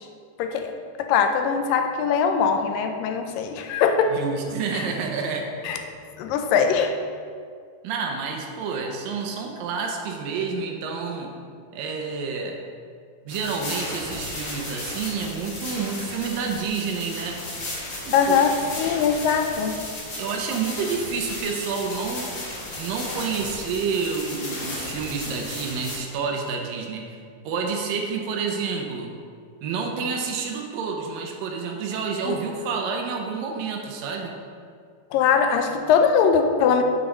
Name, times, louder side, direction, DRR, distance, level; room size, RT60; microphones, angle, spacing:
voice 1, 0.4-0.7 1.0-4.2 4.7-4.8 5.6-5.8 6.2-6.9 18.1-19.8 32.3-32.4 35.1-36.8, left 6 dB, 80° left, 6 dB, 2.2 m, -21 dB
voice 2, 4.1-5.5 7.8-11.3 11.7-12.6 13.3-17.4 18.1-18.4 18.8-18.9 20.2-22.3 22.8-27.2 27.5-29.1 29.6-34.3, right 5 dB, 80° right, 2 dB, 2.4 m, -29 dB
sound 1, 13.3-26.0, left 1 dB, 35° left, 2.1 m, -35 dB
7.1 x 6.1 x 5.4 m, 2.1 s
omnidirectional pair, 4.2 m